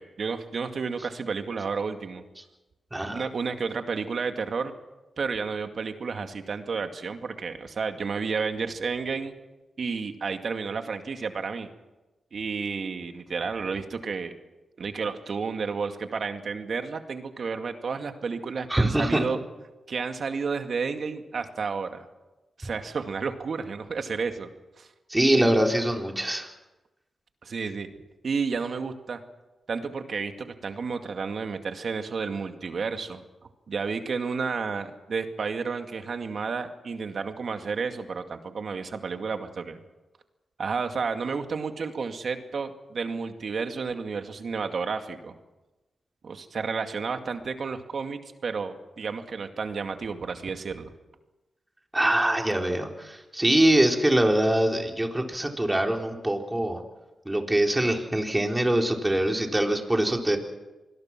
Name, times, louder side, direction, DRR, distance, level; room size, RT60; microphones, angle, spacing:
voice 1, 0.0-2.2 3.1-4.7 5.2-9.3 9.8-11.7 12.3-14.4 14.8-19.4 19.9-22.0 22.6-24.5 24.8-24.9 25.4-25.5 27.4-27.9 28.2-29.2 29.7-33.2 33.7-39.8 40.6-45.3 46.2-50.9, right 5 dB, 65° right, 6 dB, 2.2 m, -31 dB
voice 2, 2.9-3.2 18.7-19.3 25.1-26.5 51.9-56.8 57.3-60.4, right 1 dB, 15° right, 2 dB, 4.0 m, -23 dB
27.0 x 20.5 x 6.1 m, 1.1 s
cardioid pair, 60°, 0 cm